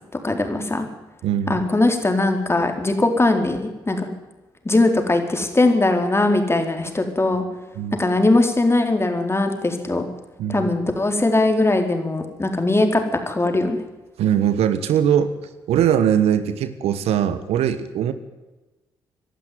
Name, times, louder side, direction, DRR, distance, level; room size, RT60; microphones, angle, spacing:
voice 1, 0.2-0.9 1.5-4.1 4.6-7.4 7.9-10.0 10.5-13.8, left 2 dB, 25° left, 5 dB, 4.3 m, -20 dB
voice 2, 1.2-1.6 7.8-8.0 10.4-10.7 14.2-15.3 15.7-18.1, right 9 dB, 75° right, 12 dB, 1.4 m, -20 dB
23.5 x 12.0 x 9.5 m, 1.1 s
hypercardioid pair, 45°, 11 cm